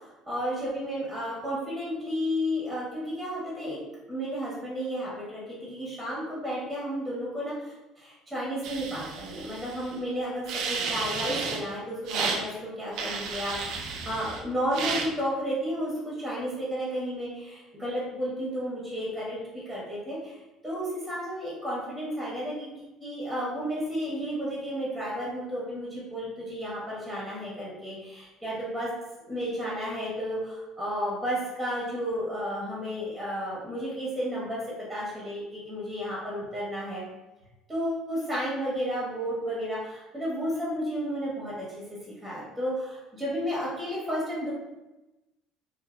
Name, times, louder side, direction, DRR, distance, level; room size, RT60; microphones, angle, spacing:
voice 1, 0.3-3.8 4.1-20.4 20.6-28.9 29.2-34.6 34.9-37.0 37.7-44.5, equal, 5° right, -7 dB, 1.1 m, -32 dB
sound 1, 8.6-9.9 10.5-11.6 12.1-12.4 12.9-14.4 14.7-15.1, right 5 dB, 60° right, 0.4 m, -32 dB
4.2 x 2.7 x 2.5 m, 1.0 s
cardioid pair, 155°, 0 cm